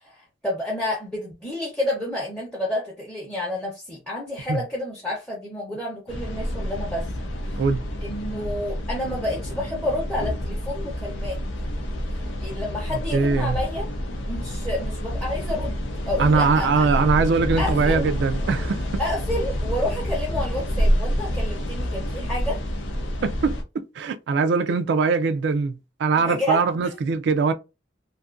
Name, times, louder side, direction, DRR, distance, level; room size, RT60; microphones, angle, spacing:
voice 1, 0.0-7.1 7.4-7.6 8.0-11.4 12.1-13.9 14.3-15.8 16.1-16.9 17.6-18.0 19.0-22.6 26.2-26.9, left 1 dB, 5° left, 0.6 m, -30 dB
sound 1, 6.1-23.6, equal, 85° left, 0.6 m, -28 dB
voice 2, 13.1-13.6 16.2-18.8 23.2-27.5, right 4 dB, 70° right, 0.3 m, -22 dB
2.6 x 2.4 x 2.4 m
head